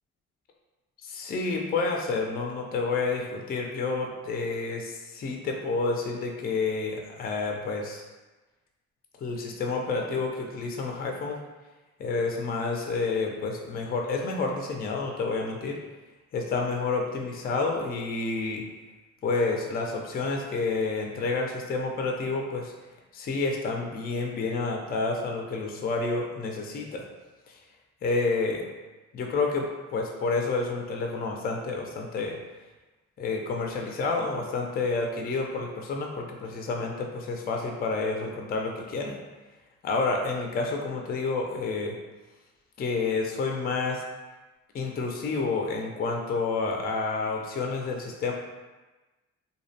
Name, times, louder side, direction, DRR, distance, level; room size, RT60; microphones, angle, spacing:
voice 1, 1.0-8.0 9.2-11.4 12.0-15.8 16.3-18.6 19.2-22.7 23.1-27.0 28.0-28.6 29.1-32.4 33.2-39.2 39.8-41.9 42.8-44.0 44.7-48.3, left 3 dB, 30° left, 1 dB, 0.4 m, -29 dB
2.6 x 2.1 x 2.7 m, 1.2 s
cardioid pair, 90°, 30 cm